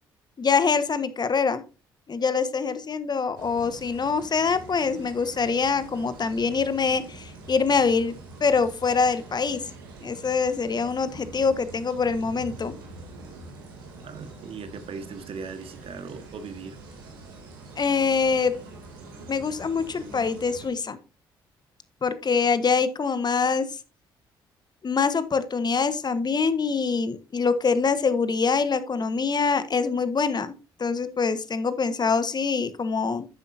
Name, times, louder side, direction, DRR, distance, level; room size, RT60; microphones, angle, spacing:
voice 1, 0.4-1.6 2.1-8.1 8.4-9.6 10.0-12.7 17.8-18.5 19.3-21.0 22.0-23.7 24.8-33.3, left 5 dB, 40° left, 12 dB, 1.3 m, -24 dB
sound 1, 3.4-20.7, right 3 dB, 90° right, 2.7 m, -44 dB
voice 2, 14.0-16.8, right 5 dB, 55° right, 9 dB, 1.7 m, -38 dB
11.5 x 8.0 x 2.7 m, 0.31 s
hypercardioid pair, 50°, 11 cm